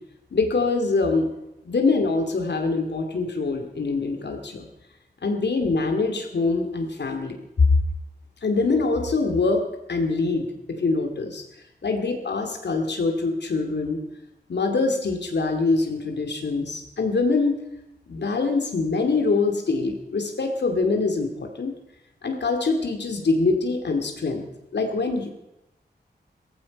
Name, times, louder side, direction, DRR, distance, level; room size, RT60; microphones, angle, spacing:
voice 1, 0.3-1.3 1.6-4.6 5.2-7.4 8.4-9.6 9.9-11.4 11.8-14.0 14.5-17.5 18.1-21.7 22.2-24.4 24.7-25.3, left 3 dB, 80° left, 4 dB, 2.7 m, -24 dB
17.5 x 15.0 x 5.4 m, 0.88 s
wide cardioid pair, 115°, 18 cm